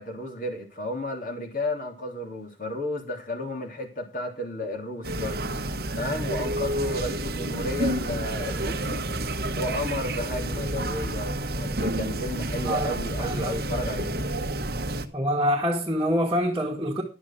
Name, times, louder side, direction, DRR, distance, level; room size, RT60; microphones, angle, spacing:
voice 1, 0.0-9.0 9.5-14.2, left 1 dB, 45° left, 3.1 m, -33 dB
sound 1, 5.0-15.1, right 1 dB, 55° right, 1.2 m, -29 dB
voice 2, 13.2-13.8 15.1-17.0, equal, 15° right, 1.8 m, -26 dB
11.5 x 7.4 x 6.0 m
head